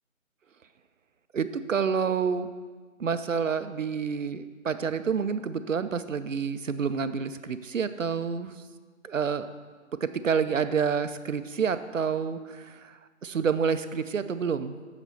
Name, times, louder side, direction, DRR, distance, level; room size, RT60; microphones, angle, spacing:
voice 1, 1.3-2.5 3.0-8.5 9.0-9.5 10.0-14.8, right 6 dB, 70° right, 12 dB, 0.6 m, -28 dB
6.9 x 5.0 x 6.8 m, 1.5 s
figure-of-eight pair, 160°, 40 cm